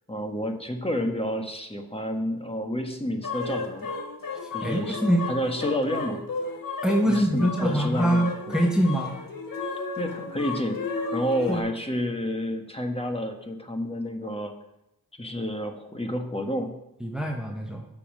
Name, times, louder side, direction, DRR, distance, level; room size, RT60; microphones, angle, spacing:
voice 1, 0.1-3.9 4.5-5.0 5.3-6.3 7.1-8.6 10.0-10.8 11.1-14.5 15.2-16.8, equal, 15° left, 4 dB, 1.4 m, -30 dB
sound 1, 3.2-11.6, left 4 dB, 70° left, 1.5 m, -34 dB
voice 2, 4.6-5.3 6.8-9.2 11.5-11.6 17.0-17.9, equal, ahead, 1 dB, 1.1 m, -24 dB
8.2 x 5.6 x 7.5 m, 0.89 s
cardioid pair, 55°, 35 cm